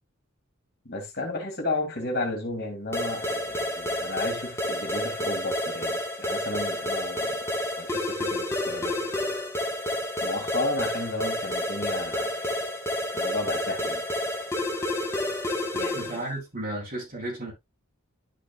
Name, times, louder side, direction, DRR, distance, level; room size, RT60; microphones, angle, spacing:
voice 1, 0.8-7.4 7.8-9.0 10.2-12.5 13.1-14.0 15.7-16.2, left 2 dB, 50° left, 2.8 m, -33 dB
sound 1, 2.9-16.3, left 1 dB, 10° left, 1.4 m, -30 dB
voice 2, 15.9-17.5, right 1 dB, 40° right, 4.4 m, -33 dB
12.0 x 5.4 x 2.3 m
head